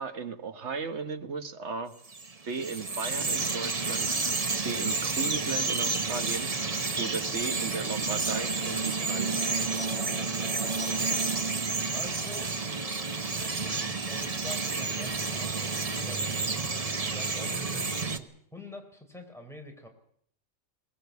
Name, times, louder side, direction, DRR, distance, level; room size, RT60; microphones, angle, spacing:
voice 1, 0.0-1.9 2.5-4.1 4.6-6.5 7.0-9.4, right 5 dB, 55° right, 9 dB, 1.5 m, -35 dB
Bird vocalization bird call bird song, 2.0-18.2, right 4 dB, 30° right, 1.1 m, -30 dB
voice 2, 9.8-10.2 11.9-12.5 13.4-19.9, equal, ahead, 3 dB, 4.0 m, -47 dB
22.0 x 18.5 x 8.2 m, 0.67 s
omnidirectional pair, 1.4 m